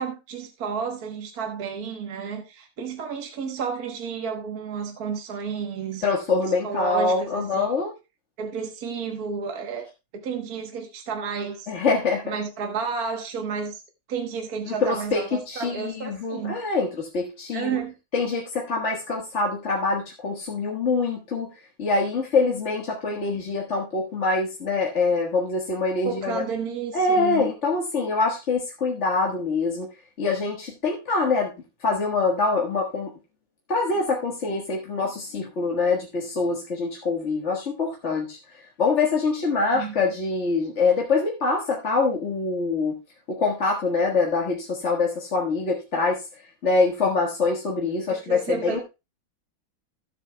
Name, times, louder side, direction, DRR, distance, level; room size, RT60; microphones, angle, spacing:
voice 1, 0.0-6.0 6.6-7.7 8.4-9.9 10.1-11.7 12.2-13.8 14.1-16.6 17.5-17.9 26.0-27.5 39.7-39.9 48.1-48.8, right 6 dB, 50° right, 1.5 m, -31 dB
voice 2, 6.0-7.9 11.7-12.3 14.7-17.8 18.1-21.5 21.8-26.4 26.9-29.9 30.2-31.5 31.8-33.1 33.7-42.9 43.3-46.2 46.6-48.8, left 3 dB, 35° left, 1.6 m, -24 dB
16.0 x 7.5 x 2.2 m
omnidirectional pair, 2.3 m